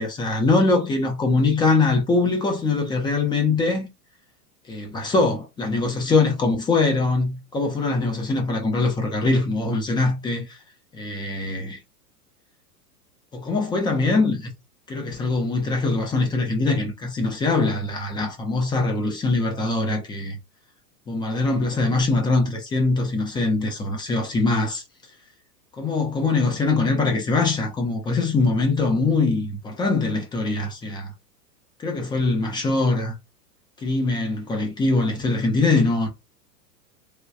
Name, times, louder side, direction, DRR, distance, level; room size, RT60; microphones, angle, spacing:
voice 1, 0.0-3.9 4.7-10.6 10.9-11.8 13.3-14.5 14.9-20.4 21.1-24.8 25.7-31.1 31.8-33.2 33.8-36.1, left 3 dB, 10° left, 0.4 m, -22 dB
3.3 x 2.3 x 2.6 m
hypercardioid pair, 105°, 48 cm